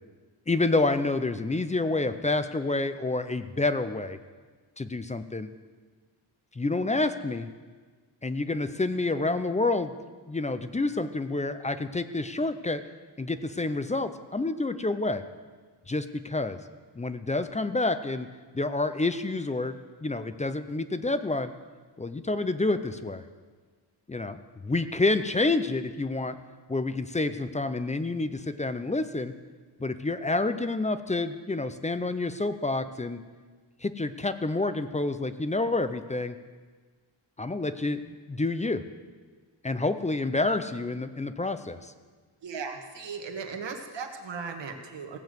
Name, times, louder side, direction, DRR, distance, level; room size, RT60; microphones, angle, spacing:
voice 1, 0.5-4.2 4.8-5.5 6.6-7.5 8.2-9.9 10.3-12.8 13.2-15.2 15.9-16.6 16.9-18.3 18.5-21.5 22.0-23.2 24.1-24.4 24.6-26.4 26.7-29.3 29.8-33.2 33.8-36.4 37.4-38.8 39.6-41.9, left 2 dB, 15° left, 11 dB, 0.4 m, -28 dB
voice 2, 42.4-45.2, right 5 dB, 65° right, 4 dB, 1.6 m, -37 dB
16.5 x 7.0 x 7.7 m, 1.5 s
wide cardioid pair, 160°, 46 cm